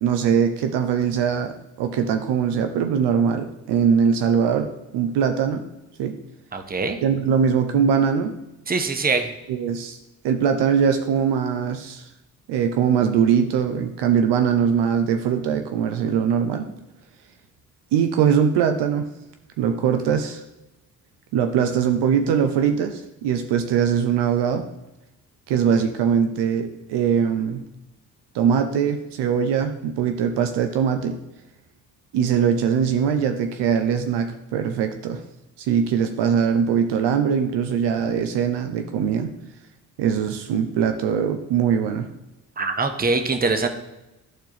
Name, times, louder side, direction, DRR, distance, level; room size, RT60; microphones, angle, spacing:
voice 1, 0.0-4.7 4.9-5.6 6.0-6.2 7.0-8.3 9.5-10.0 10.2-12.0 12.5-16.7 17.9-19.1 19.6-20.4 21.3-24.7 25.5-27.6 28.3-31.2 32.1-35.2 35.6-39.3 40.0-42.1, right 7 dB, 60° right, 7 dB, 0.7 m, -21 dB
voice 2, 6.5-7.0 8.7-9.3 42.6-43.7, right 4 dB, 20° right, 6 dB, 0.9 m, -23 dB
12.0 x 4.5 x 2.9 m, 0.96 s
hypercardioid pair, 45°, 47 cm